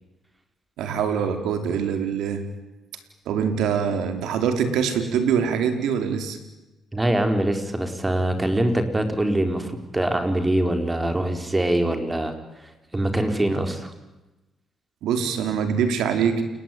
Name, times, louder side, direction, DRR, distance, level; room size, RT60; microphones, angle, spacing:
voice 1, 0.8-2.4 3.3-6.4 15.0-16.4, right 7 dB, 85° right, 7 dB, 4.4 m, -24 dB
voice 2, 6.9-12.3 12.9-13.9, right 1 dB, 15° right, 7 dB, 4.5 m, -23 dB
29.0 x 20.5 x 9.5 m, 1.0 s
cardioid pair, 90°, 0 cm